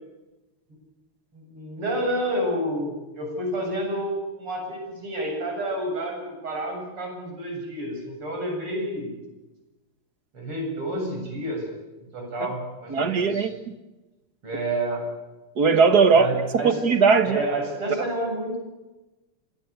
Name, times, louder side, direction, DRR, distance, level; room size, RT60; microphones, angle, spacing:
voice 1, 1.3-9.2 10.3-11.6 12.1-13.5 14.4-15.0 16.1-16.8 17.3-18.6, right 1 dB, 80° right, 1 dB, 8.6 m, -29 dB
voice 2, 12.9-13.5 15.6-16.3 16.6-17.4, right 5 dB, 50° right, 8 dB, 2.0 m, -18 dB
27.5 x 21.0 x 8.3 m, 1.1 s
omnidirectional pair, 2.4 m